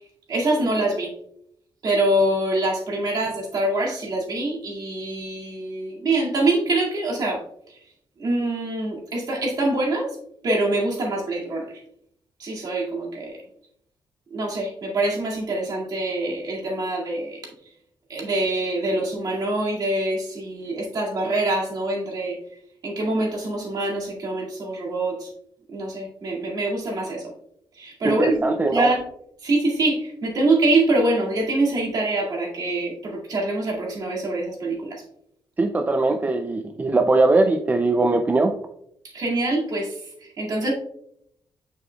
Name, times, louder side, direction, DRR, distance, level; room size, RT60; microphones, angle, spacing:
voice 1, 0.3-1.1 1.8-7.8 8.2-10.2 10.4-11.8 12.4-13.4 14.3-17.4 18.1-22.4 22.8-25.3 25.7-27.3 27.7-28.3 28.7-29.0 29.4-35.0 39.0-40.7, right 2 dB, 50° right, -2 dB, 2.1 m, -24 dB
voice 2, 28.0-28.9 35.6-38.5, right 2 dB, 20° right, 5 dB, 0.4 m, -20 dB
8.0 x 7.0 x 2.3 m, 0.73 s
wide cardioid pair, 165°, 9 cm